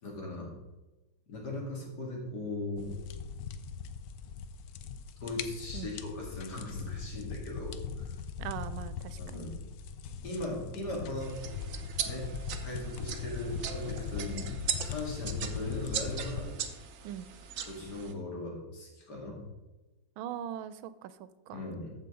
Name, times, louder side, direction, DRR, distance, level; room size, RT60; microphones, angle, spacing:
voice 1, 0.0-0.5 1.3-2.9 5.2-8.2 9.2-9.6 10.2-11.4 12.0-12.3 12.6-14.4 14.8-16.5 17.7-19.4 21.5-21.9, left 2 dB, 55° left, -2 dB, 2.7 m, -38 dB
sound 1, 2.8-16.4, left 6 dB, 70° left, 0.9 m, -40 dB
voice 2, 8.4-9.5 17.0-17.3 20.2-21.7, right 10 dB, 85° right, 14 dB, 1.4 m, -41 dB
sound 2, 11.2-18.1, right 8 dB, 60° right, 0.8 m, -39 dB
14.5 x 5.4 x 3.7 m, 1.1 s
omnidirectional pair, 2.1 m